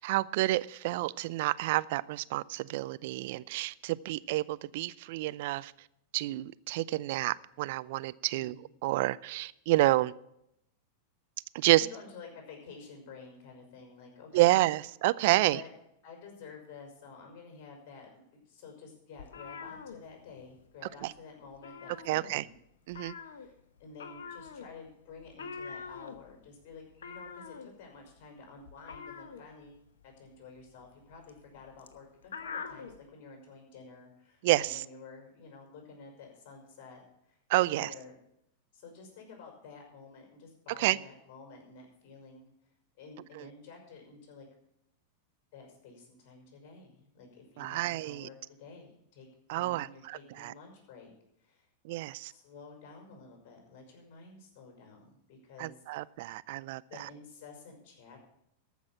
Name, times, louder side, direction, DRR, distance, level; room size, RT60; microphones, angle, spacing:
voice 1, 0.0-5.7 6.1-8.5 8.8-10.1 11.5-11.9 14.3-15.6 21.0-21.1 22.1-22.4 22.9-23.1 34.4-34.8 37.5-37.9 40.8-41.0 43.4-43.5 47.6-48.3 49.5-50.5 51.8-52.3 55.6-57.1, right 18 dB, 60° right, 18 dB, 0.4 m, -29 dB
voice 2, 8.3-8.7 11.6-14.6 15.2-15.7 16.0-22.5 23.3-23.5 23.8-37.4 37.6-38.1 38.7-42.5 43.0-44.5 45.5-49.3 49.5-51.1 51.4-51.7 52.3-56.1 56.9-58.2, left 4 dB, 50° left, 2 dB, 5.6 m, -51 dB
sound 1, 19.2-20.7 20.9-21.2 21.5-22.6 22.9-33.0, left 5 dB, 75° left, 1.1 m, -45 dB
14.0 x 6.2 x 8.6 m, 0.78 s
hypercardioid pair, 95°, 0 cm